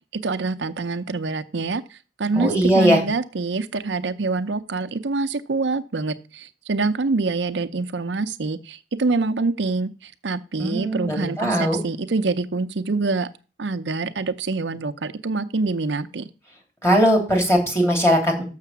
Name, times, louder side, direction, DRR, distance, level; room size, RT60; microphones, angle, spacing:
voice 1, 0.1-13.3 13.6-16.2, right 3 dB, 75° right, 9 dB, 0.6 m, -25 dB
voice 2, 2.3-3.0 10.6-11.8 16.8-18.4, equal, 15° left, 2 dB, 2.9 m, -19 dB
6.8 x 6.5 x 7.2 m, 0.35 s
head